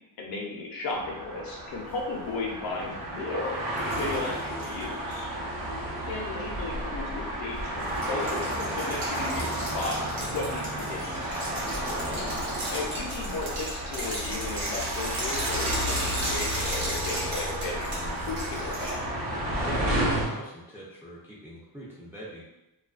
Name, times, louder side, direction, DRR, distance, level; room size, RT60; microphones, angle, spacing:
voice 1, 0.2-3.6 4.0-5.3 6.0-10.0 10.3-11.6 12.0-12.3 12.7-18.0 18.2-19.0, left 3 dB, 65° left, -1 dB, 0.7 m, -35 dB
sound 1, 0.9-20.3, right 1 dB, 55° right, 0.9 m, -32 dB
sound 2, 3.8-5.2 7.8-18.9, right 1 dB, 85° right, 1.0 m, -35 dB
voice 2, 19.6-22.4, equal, 5° right, -7 dB, 0.5 m, -43 dB
2.4 x 2.2 x 2.3 m, 0.95 s
cardioid pair, 115°, 40 cm